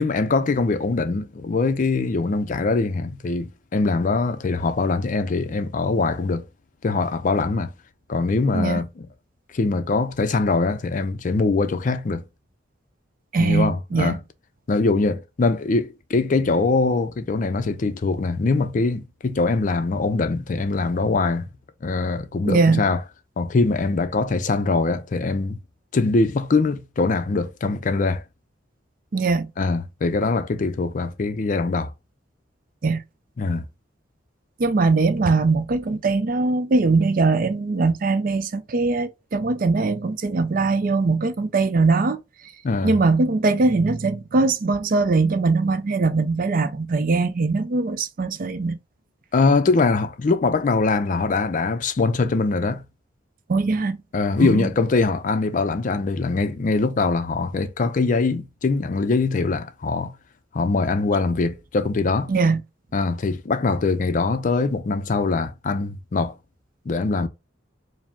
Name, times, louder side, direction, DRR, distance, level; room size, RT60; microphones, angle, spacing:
voice 1, 0.0-6.5 6.8-7.7 8.1-9.1 9.5-12.2 13.4-14.2 14.7-21.5 21.8-23.0 23.4-25.6 25.9-28.2 29.6-31.9 33.4-33.6 42.6-43.0 49.3-52.8 54.1-60.1 60.5-62.3 62.9-66.3 66.9-67.3, left 3 dB, 40° left, 0.4 m, -22 dB
voice 2, 13.3-14.2 22.4-22.8 29.1-29.5 32.8-33.0 34.6-42.2 42.8-48.8 53.5-54.0 54.4-54.7 62.3-62.6, right 3 dB, 45° right, 0.4 m, -21 dB
4.8 x 2.0 x 3.5 m
head